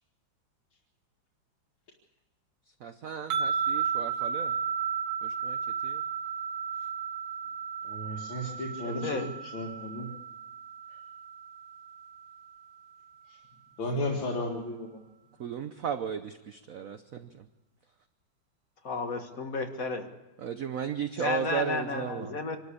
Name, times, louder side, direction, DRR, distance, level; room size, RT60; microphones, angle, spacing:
voice 1, 2.8-4.5 5.2-5.6 5.8-6.0 14.0-14.2 15.4-17.5 20.4-22.4, right 8 dB, 55° right, 10 dB, 1.0 m, -35 dB
sound 1, 3.3-12.6, right 7 dB, 85° right, 1.9 m, -34 dB
voice 2, 7.8-10.1 13.8-14.9, left 1 dB, 80° left, -2 dB, 2.8 m, -34 dB
voice 3, 8.8-9.3 18.8-20.1 21.2-22.6, left 3 dB, 45° left, 6 dB, 2.0 m, -32 dB
26.0 x 12.5 x 8.4 m, 1.1 s
omnidirectional pair, 2.1 m